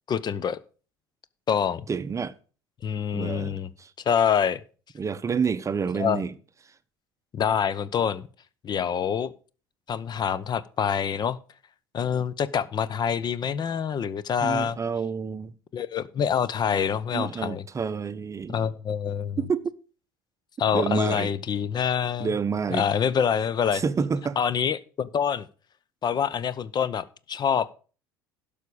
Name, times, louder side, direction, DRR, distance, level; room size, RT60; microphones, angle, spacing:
voice 1, 0.1-0.6 1.5-1.8 2.8-3.7 4.1-4.6 5.9-6.2 7.3-8.3 8.6-9.3 9.9-11.4 11.9-14.8 15.7-17.6 18.5-19.4 20.6-22.3 22.7-23.8 24.4-25.5 26.0-27.7, left 7 dB, 35° left, 0.8 m, -26 dB
voice 2, 1.9-2.3 3.1-3.9 5.0-6.3 14.4-15.5 17.1-18.7 19.4-19.7 20.7-21.3 22.2-22.9 23.7-24.4, right 6 dB, 25° right, 0.7 m, -28 dB
12.0 x 5.0 x 7.0 m
hypercardioid pair, 70°, 12 cm